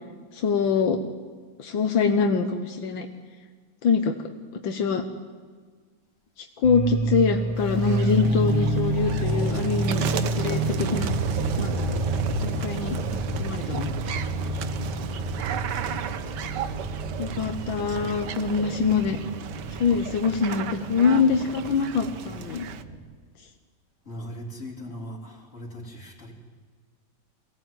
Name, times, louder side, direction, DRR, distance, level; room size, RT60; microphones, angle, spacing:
voice 1, 0.3-1.0 1.6-3.1 3.8-4.1 4.6-5.0 6.6-11.1 11.6-11.7 12.4-13.9 17.2-19.2 19.8-22.7, left 5 dB, 85° left, 5 dB, 2.0 m, -24 dB
sound 1, 6.6-23.0, right 2 dB, 25° right, 3.4 m, -29 dB
sound 2, 7.6-22.8, right 9 dB, 70° right, 1.5 m, -36 dB
voice 2, 24.1-26.3, equal, 40° left, 0 dB, 3.8 m, -39 dB
23.0 x 17.0 x 9.2 m, 1.5 s
omnidirectional pair, 2.1 m